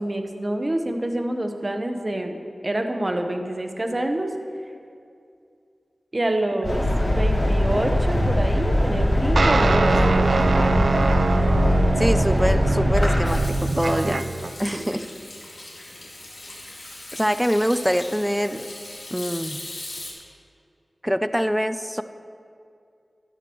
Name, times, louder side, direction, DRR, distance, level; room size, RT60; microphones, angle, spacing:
voice 1, 0.0-4.3 6.1-6.8 7.1-10.7 13.6-13.7 14.0-14.2 14.7-15.0, right 1 dB, 35° right, 5 dB, 1.0 m, -27 dB
sound 1, 6.6-13.3, left 1 dB, 35° left, 3.0 m, -21 dB
sound 2, 9.4-14.5, right 3 dB, 75° right, 0.3 m, -23 dB
voice 2, 12.0-14.2 14.6-15.0 17.1-18.7 19.1-19.6 21.0-22.0, equal, ahead, 11 dB, 0.4 m, -24 dB
Hands / Sink (filling or washing), 13.2-20.1, left 2 dB, 60° left, 2.3 m, -39 dB
12.5 x 12.0 x 3.1 m, 2.4 s
wide cardioid pair, 50°, 0 cm